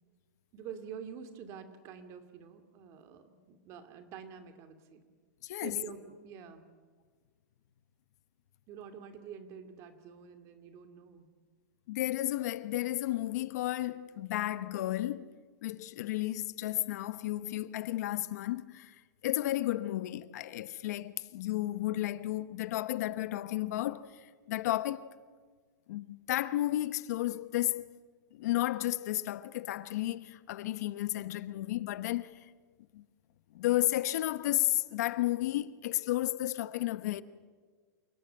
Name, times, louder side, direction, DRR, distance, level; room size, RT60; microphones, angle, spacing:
voice 1, 0.5-5.0 5.6-6.7 8.7-11.3, right 7 dB, 30° right, 2.4 m, -47 dB
voice 2, 5.4-5.8 11.9-15.3 15.6-18.9 19.2-24.1 24.5-25.1 25.9-27.9 28.3-32.4 32.9-33.0 33.5-37.2, left 15 dB, 55° left, 1.1 m, -32 dB
28.0 x 18.5 x 9.0 m
supercardioid pair, 165°, 10 cm